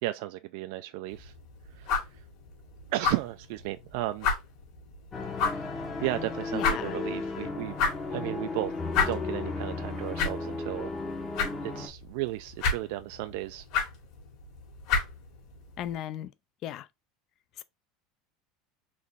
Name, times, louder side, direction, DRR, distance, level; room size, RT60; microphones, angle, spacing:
voice 1, 0.0-1.3 1.7-2.2 2.9-4.3 5.4-7.7 8.1-8.7 9.1-10.9 11.6-13.7, right 17 dB, 60° right, 0.3 m, -34 dB
sound 1, 1.1-15.9, left 5 dB, 55° left, 1.9 m, -33 dB
sound 2, 5.1-11.9, left 3 dB, 20° left, 0.7 m, -35 dB
voice 2, 6.5-7.0 15.8-16.3 16.6-16.9 17.6-17.7, left 11 dB, 35° left, 0.4 m, -36 dB
4.1 x 3.1 x 3.5 m
supercardioid pair, 165°, 0 cm